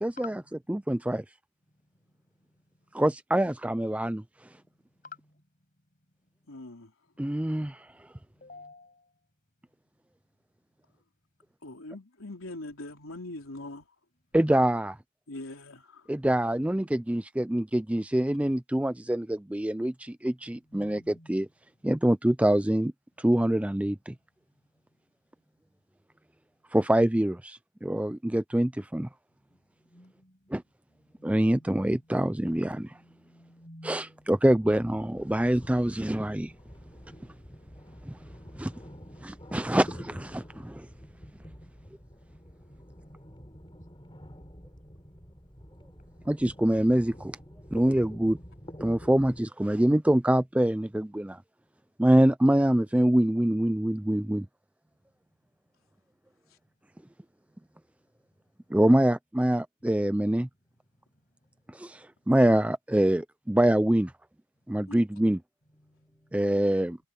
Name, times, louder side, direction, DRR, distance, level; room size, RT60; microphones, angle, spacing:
voice 1, 0.0-0.4 0.7-1.2 2.9-4.2 7.2-7.9 14.3-15.0 16.1-21.5 21.8-22.9 23.2-24.1 26.7-29.1 30.5-30.6 31.2-32.9 33.8-36.5 38.6-38.7 39.2-40.9 46.3-47.4 47.7-48.4 48.8-51.4 52.0-54.5 58.7-60.5 61.7-64.1 64.7-65.4 66.3-67.0, right 1 dB, 5° right, 0.4 m, -25 dB
voice 2, 6.5-6.9 11.6-13.9 15.3-16.0 64.9-65.0, left 2 dB, 90° left, 3.7 m, -42 dB
voice 3, 8.4-9.0 20.7-21.3 29.9-30.4 31.2-31.9 32.7-34.3 43.0-43.1 65.9-66.3, left 3 dB, 40° left, 7.9 m, -50 dB
sound 1, 34.5-49.4, equal, 25° left, 6.7 m, -47 dB
head